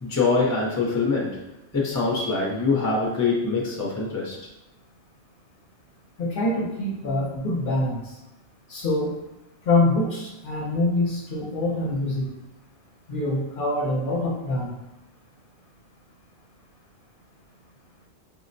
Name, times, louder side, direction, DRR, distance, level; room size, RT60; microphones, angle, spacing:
voice 1, 0.0-1.4 1.7-4.4, left 4 dB, 20° left, -3 dB, 0.6 m, -24 dB
voice 2, 6.2-8.2 8.7-9.1 9.7-12.3 13.1-14.7, left 2 dB, 60° left, -2 dB, 0.7 m, -25 dB
4.5 x 2.1 x 2.6 m, 0.96 s
omnidirectional pair, 1.1 m